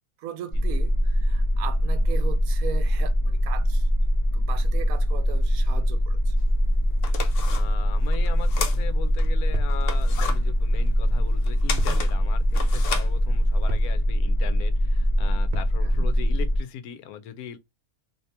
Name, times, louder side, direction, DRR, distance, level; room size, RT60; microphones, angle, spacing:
voice 1, 0.2-3.9 4.3-6.4 15.8-15.9, right 9 dB, 75° right, 1.0 m, -38 dB
sound 1, 0.5-16.6, equal, 30° left, 0.7 m, -22 dB
sound 2, 6.4-6.5 6.9-9.3 9.7-13.8, left 5 dB, 65° left, 0.9 m, -34 dB
voice 2, 7.5-17.6, left 9 dB, 85° left, 1.1 m, -39 dB
sound 3, 9.5-9.9 11.8-12.1 12.4-12.5 13.7-14.0 15.5-15.8, right 3 dB, 55° right, 0.7 m, -37 dB
2.8 x 2.8 x 3.2 m
omnidirectional pair, 1.5 m